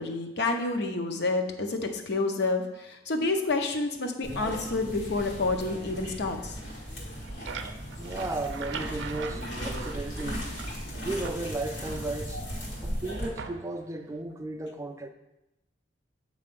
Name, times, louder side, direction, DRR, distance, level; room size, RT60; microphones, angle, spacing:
voice 1, 0.0-6.6, left 3 dB, 65° left, 4 dB, 0.7 m, -29 dB
sound 1, 4.2-13.3, equal, 80° left, 1.9 m, -37 dB
sound 2, 7.0-10.9 11.2-12.6 13.4-13.9, right 5 dB, 75° right, 0.5 m, -41 dB
voice 2, 7.6-10.5 11.0-12.4 12.8-15.1, right 2 dB, 15° right, 6 dB, 0.4 m, -35 dB
7.6 x 3.1 x 5.3 m, 0.95 s
head